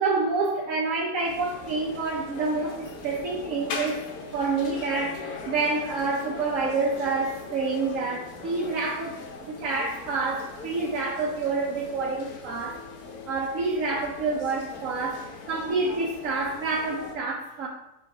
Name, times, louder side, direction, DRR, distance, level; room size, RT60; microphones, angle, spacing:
voice 1, 0.0-4.0 4.3-12.8 13.3-17.7, right 3 dB, 65° right, -1 dB, 1.0 m, -28 dB
sound 1, 1.2-17.2, left 3 dB, 80° left, 1.4 m, -40 dB
6.8 x 3.0 x 4.7 m, 0.90 s
omnidirectional pair, 1.6 m